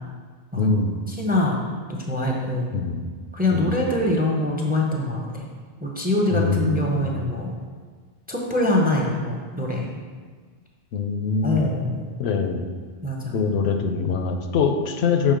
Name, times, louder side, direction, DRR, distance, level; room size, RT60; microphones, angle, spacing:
voice 1, 0.6-1.0 2.7-3.0 3.5-3.8 6.3-7.1 10.9-11.7 12.2-12.6 13.3-15.3, left 5 dB, 80° left, 6 dB, 0.8 m, -23 dB
voice 2, 1.2-1.6 1.9-2.7 3.3-5.4 5.8-7.5 8.3-9.9 11.4-12.1 13.0-13.4, left 1 dB, 10° right, -1 dB, 0.5 m, -23 dB
6.5 x 3.2 x 5.0 m, 1.5 s
omnidirectional pair, 1.1 m